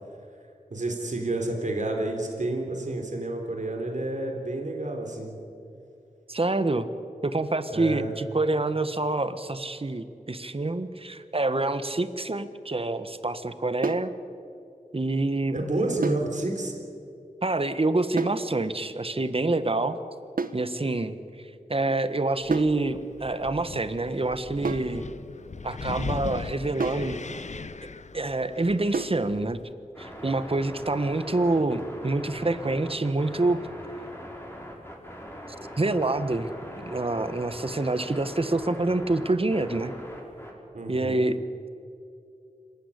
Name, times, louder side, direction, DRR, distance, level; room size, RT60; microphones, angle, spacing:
voice 1, 0.7-5.4 7.7-8.1 15.5-16.7 40.7-41.2, right 2 dB, 60° right, 2 dB, 3.7 m, -29 dB
voice 2, 6.3-6.9 7.2-14.1 14.9-15.6 15.9-16.0 17.4-20.0 20.5-21.2 21.7-25.0 25.6-27.2 28.1-29.6 30.0-33.6 35.8-36.5 36.8-39.9 40.9-41.4, right 2 dB, 40° right, 11 dB, 1.4 m, -27 dB
sound 1, 13.8-14.1 16.0-16.3 18.2-18.5 20.4-20.7 22.5-22.8 24.6-25.0 26.8-27.1 28.9-29.2, right 4 dB, 85° right, 1.1 m, -30 dB
Wind, 22.4-29.7, left 4 dB, 55° left, 0.8 m, -39 dB
sound 2, 29.9-40.5, equal, 15° left, 5.6 m, -41 dB
26.5 x 15.5 x 10.0 m, 2.6 s
wide cardioid pair, 60°, 14 cm